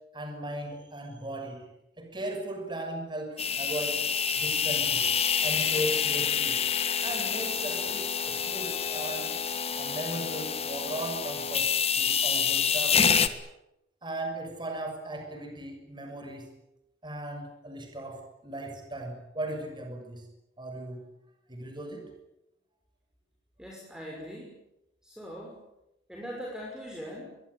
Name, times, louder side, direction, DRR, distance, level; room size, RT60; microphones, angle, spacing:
voice 1, 0.1-1.7 2.0-4.1 4.4-5.1 5.4-6.6 7.0-9.4 9.8-13.2 14.0-16.6 17.0-20.3 20.6-21.1 21.5-22.1, right 1 dB, 25° right, 4 dB, 6.4 m, -37 dB
sound 1, 3.4-13.3, left 7 dB, 35° left, 1.6 m, -27 dB
voice 2, 23.6-24.6 25.0-25.6 26.1-27.4, equal, 5° right, -1 dB, 5.9 m, -41 dB
24.0 x 22.0 x 9.6 m, 0.87 s
head